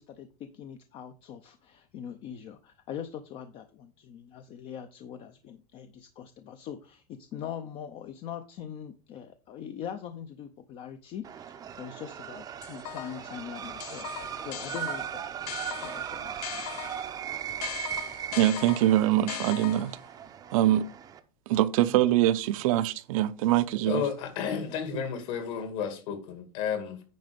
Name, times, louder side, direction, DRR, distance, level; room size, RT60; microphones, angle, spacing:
voice 1, 0.0-14.1 14.4-15.3 15.8-16.8, left 9 dB, 30° left, 0.6 m, -42 dB
sound 1, 11.2-21.2, right 9 dB, 20° right, 0.6 m, -38 dB
sound 2, 12.6-13.3 13.8-17.1 17.6-20.1, left 13 dB, 85° left, 0.6 m, -40 dB
voice 2, 18.4-20.0 20.5-20.9 21.5-24.0, right 13 dB, 60° right, 0.7 m, -23 dB
voice 3, 23.9-27.0, left 7 dB, 55° left, 2.2 m, -32 dB
9.4 x 5.1 x 5.1 m
supercardioid pair, 165°, 20 cm